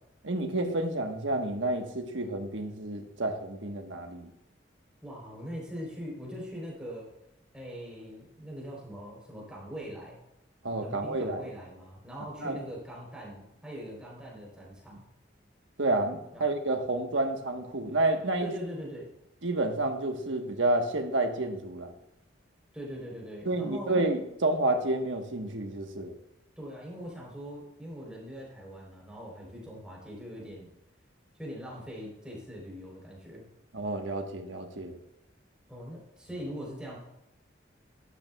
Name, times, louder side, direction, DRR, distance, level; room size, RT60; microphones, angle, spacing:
voice 1, 0.2-4.3 10.6-11.5 12.4-12.6 15.8-18.5 19.4-21.9 23.4-26.1 33.7-35.0, right 2 dB, 85° right, 4 dB, 1.3 m, -30 dB
voice 2, 5.0-7.1 7.5-10.2 10.8-15.0 16.3-16.5 18.4-19.1 22.7-23.9 26.6-30.7 31.4-33.4 35.7-37.0, equal, 5° right, -3 dB, 3.7 m, -41 dB
12.0 x 12.0 x 2.3 m, 0.87 s
head